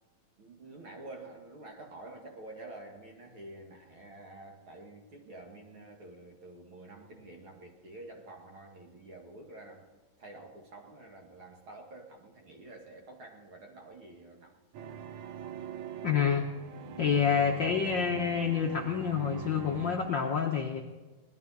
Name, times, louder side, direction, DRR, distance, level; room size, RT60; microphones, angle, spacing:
voice 1, 0.4-9.9 10.2-14.6, right 2 dB, 45° right, 1 dB, 2.2 m, -49 dB
sound 1, 14.7-20.0, right 6 dB, 75° right, 2.3 m, -42 dB
voice 2, 16.0-16.5 17.0-20.8, left 7 dB, 90° left, 1 dB, 1.0 m, -28 dB
19.0 x 12.0 x 4.1 m, 1.2 s
omnidirectional pair, 3.5 m